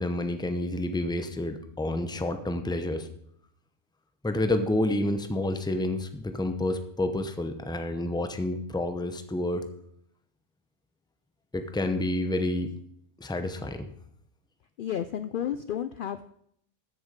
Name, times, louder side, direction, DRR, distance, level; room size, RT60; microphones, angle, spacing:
voice 1, 0.0-3.1 4.2-9.7 11.5-12.7 13.2-13.9, left 1 dB, 5° left, 8 dB, 0.7 m, -29 dB
voice 2, 14.8-16.3, left 9 dB, 60° left, 11 dB, 0.6 m, -32 dB
14.0 x 7.0 x 5.2 m, 0.70 s
omnidirectional pair, 1.3 m